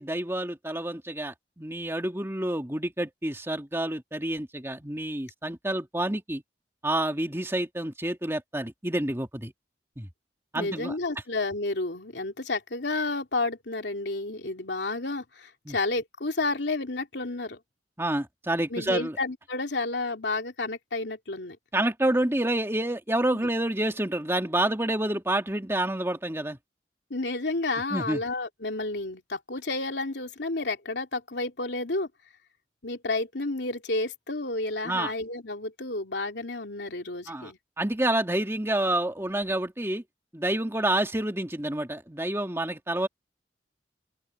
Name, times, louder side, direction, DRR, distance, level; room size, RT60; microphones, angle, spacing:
voice 1, 0.0-6.4 6.8-9.5 10.0-10.1 10.5-11.0 15.7-15.8 18.0-19.2 21.7-26.6 27.9-28.2 34.8-35.1 37.3-37.5 37.8-40.0 40.3-43.1, right 1 dB, 15° right, 2.2 m, -28 dB
voice 2, 10.5-17.6 18.7-21.6 23.3-23.5 27.1-32.1 32.8-37.6, left 2 dB, 85° left, 2.9 m, -31 dB
open air
head